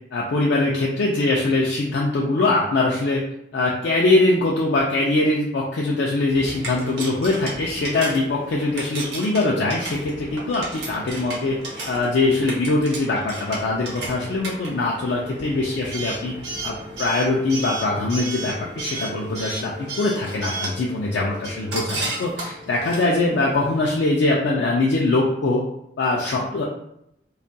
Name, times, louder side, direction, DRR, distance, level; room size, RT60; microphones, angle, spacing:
voice 1, 0.1-3.2 3.5-11.6 11.9-16.3 16.6-25.6 26.0-26.6, left 2 dB, 65° left, -3 dB, 0.3 m, -22 dB
Coin (dropping) / Alarm, 6.3-23.8, right 2 dB, 60° right, 0.7 m, -34 dB
2.3 x 2.1 x 2.6 m, 0.79 s
head